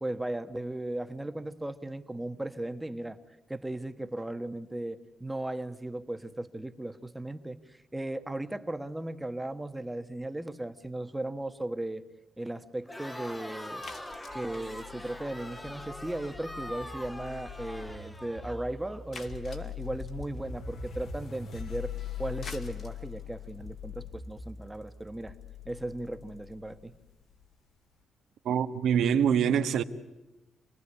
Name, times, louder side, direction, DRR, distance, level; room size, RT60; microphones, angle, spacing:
voice 1, 0.0-3.2 3.5-12.0 12.4-13.8 14.3-21.9 22.2-25.3 25.6-26.9, right 1 dB, 10° right, 1.2 m, -36 dB
Crowd, 12.8-19.0, left 1 dB, 10° left, 1.3 m, -43 dB
sound 1, 13.8-16.1 16.3-16.6 16.9-17.0 17.3-17.4 17.7-17.8 18.1-18.2 19.1-20.4 22.2-26.5, left 4 dB, 45° left, 2.4 m, -49 dB
sound 2, 14.3-27.5, left 6 dB, 65° left, 2.6 m, -42 dB
voice 2, 28.4-29.8, right 8 dB, 75° right, 1.3 m, -25 dB
27.5 x 20.0 x 9.8 m
cardioid pair, 140°, 0 cm